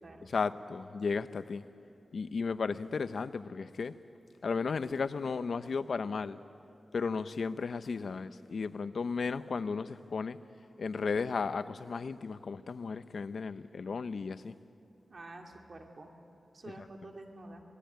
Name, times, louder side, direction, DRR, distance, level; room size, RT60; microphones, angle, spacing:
voice 1, 0.2-1.6 2.1-3.9 4.4-6.4 6.9-10.4 10.8-14.5 16.8-16.9, left 5 dB, 75° left, 13 dB, 0.7 m, -34 dB
voice 2, 15.1-16.1 16.5-17.6, right 2 dB, 55° right, 2 dB, 2.6 m, -48 dB
26.0 x 19.0 x 9.3 m, 2.8 s
wide cardioid pair, 85°, 0 cm